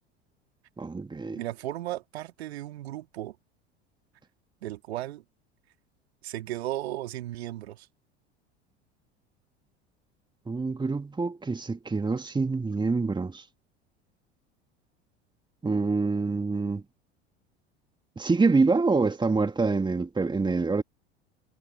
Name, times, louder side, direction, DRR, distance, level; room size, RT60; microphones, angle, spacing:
voice 1, 0.8-1.4 10.5-13.4 15.6-16.8 18.2-20.8, right 4 dB, 15° right, 2.0 m, -26 dB
voice 2, 1.3-3.4 4.6-5.2 6.2-7.9, right 14 dB, 70° right, 2.3 m, -35 dB
figure-of-eight pair, 75°, 33 cm